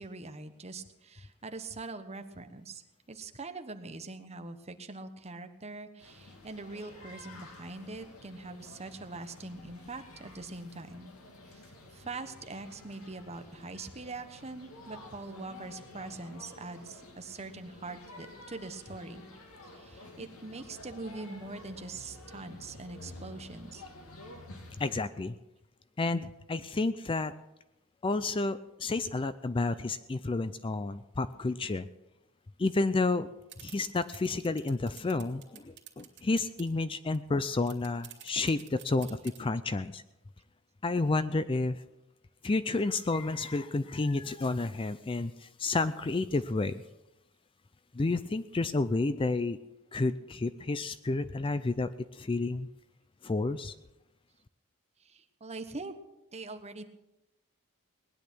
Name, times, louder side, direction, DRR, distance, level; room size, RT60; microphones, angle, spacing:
voice 1, 0.0-2.8 3.1-11.1 11.5-11.6 11.9-19.3 19.7-23.8 46.3-46.4 55.0-55.9 56.3-56.8, right 3 dB, 30° right, 8 dB, 1.1 m, -43 dB
sound 1, 6.0-25.0, left 1 dB, 80° left, 2.5 m, -51 dB
voice 2, 24.8-25.4 26.0-27.3 28.0-31.9 32.6-33.3 33.6-40.0 40.8-41.8 42.4-46.8 47.9-49.6 49.9-52.7 53.2-53.7, left 3 dB, 25° left, 13 dB, 0.4 m, -30 dB
sound 2, 33.5-36.7 37.1-37.2 37.5-39.4, right 12 dB, 55° right, 2.6 m, -49 dB
19.0 x 10.5 x 6.2 m, 0.92 s
head